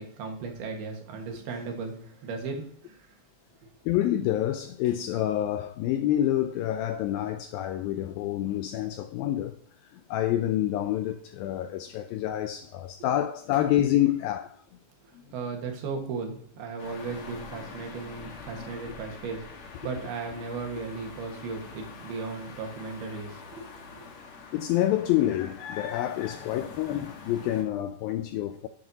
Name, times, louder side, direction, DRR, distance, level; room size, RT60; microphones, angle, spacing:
voice 1, 0.0-3.1 15.0-24.1, right 4 dB, 75° right, 3.4 m, -36 dB
voice 2, 3.9-9.6 9.8-14.5 15.1-15.2 24.5-28.7, left 12 dB, 85° left, 2.1 m, -27 dB
sound 1, 16.8-27.6, left 4 dB, 55° left, 2.2 m, -45 dB
11.5 x 7.5 x 2.8 m
omnidirectional pair, 4.7 m